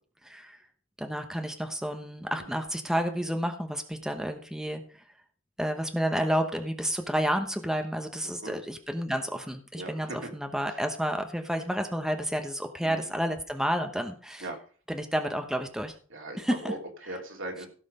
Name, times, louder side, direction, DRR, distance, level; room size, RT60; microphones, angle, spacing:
voice 1, 0.2-0.6 1.0-5.0 5.6-14.4 14.9-15.9 16.4-16.6, equal, 5° right, 5 dB, 1.0 m, -30 dB
voice 2, 9.7-10.3 10.7-10.8 12.8-13.1 14.4-14.6 16.1-17.7, right 2 dB, 65° right, 2 dB, 2.9 m, -39 dB
16.5 x 5.8 x 5.5 m, 0.43 s
head